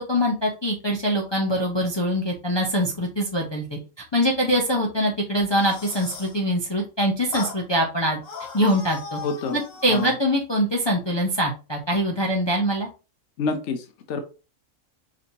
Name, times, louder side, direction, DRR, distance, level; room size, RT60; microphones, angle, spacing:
voice 1, 0.0-3.8 4.1-8.2 8.5-9.2 9.5-12.9, equal, 30° left, -1 dB, 0.6 m, -23 dB
sound 1, 5.4-6.4 7.3-7.6 8.2-10.2, left 4 dB, 85° left, 1.4 m, -37 dB
voice 2, 9.2-9.6 9.9-10.1 13.4-14.2, left 4 dB, 65° left, 6 dB, 0.9 m, -28 dB
5.1 x 2.8 x 2.7 m, 0.32 s
omnidirectional pair, 1.4 m